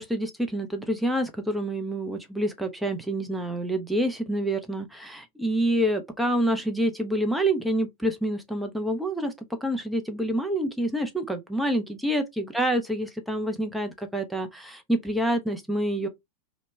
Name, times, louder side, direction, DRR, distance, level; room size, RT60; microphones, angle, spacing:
voice 1, 0.0-9.3 9.6-16.1, right 1 dB, 5° right, 0.5 m, -27 dB
3.0 x 2.1 x 3.0 m
figure-of-eight pair, 90°, 0 cm